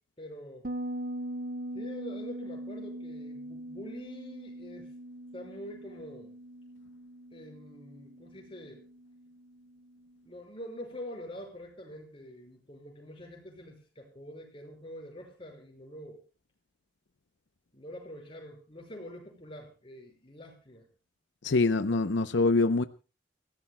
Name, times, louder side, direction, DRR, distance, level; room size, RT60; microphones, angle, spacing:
voice 1, 0.2-0.7 1.7-4.9 5.3-6.4 7.3-8.8 10.2-16.2 17.7-20.9 21.9-22.0, left 1 dB, 30° left, 5.5 m, -45 dB
Bass guitar, 0.6-10.0, right 1 dB, 50° right, 0.9 m, -41 dB
voice 2, 21.4-22.8, left 3 dB, 80° left, 0.7 m, -24 dB
29.5 x 16.0 x 2.2 m
head